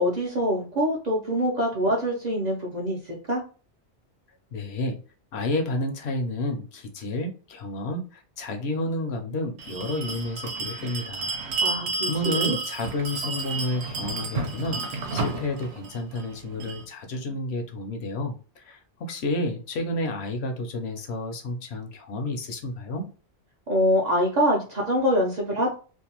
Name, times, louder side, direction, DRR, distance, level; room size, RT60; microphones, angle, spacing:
voice 1, 0.0-3.4 11.6-12.5 23.7-25.7, equal, 50° right, -2 dB, 0.5 m, -25 dB
voice 2, 4.5-5.0 5.3-11.3 12.0-23.1, left 2 dB, 70° left, 4 dB, 0.8 m, -30 dB
Bell, 9.6-16.8, right 3 dB, 65° right, 0.9 m, -31 dB
2.6 x 2.1 x 2.8 m, 0.36 s
omnidirectional pair, 1.2 m